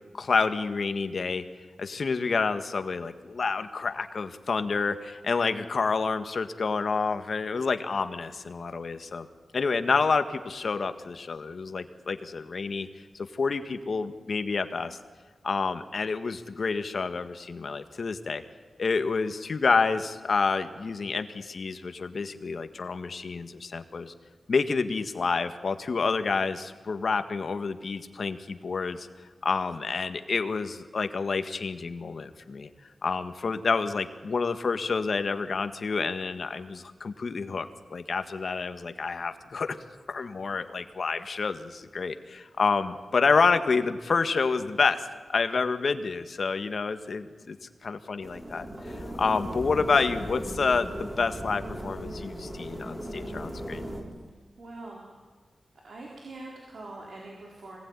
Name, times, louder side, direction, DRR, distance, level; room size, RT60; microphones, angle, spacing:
voice 1, 0.1-1.4 1.8-9.3 9.5-12.9 13.1-15.0 15.4-18.4 18.8-24.1 24.5-29.1 29.4-32.7 33.0-39.8 40.1-47.6 47.8-53.9, left 4 dB, 65° left, 9 dB, 1.7 m, -28 dB
sound 1, 48.2-54.0, equal, 25° right, 7.1 m, -37 dB
voice 2, 54.6-55.1 55.8-57.8, right 2 dB, 75° right, -2 dB, 4.4 m, -43 dB
24.5 x 18.5 x 9.8 m, 1.5 s
wide cardioid pair, 90°, 0 cm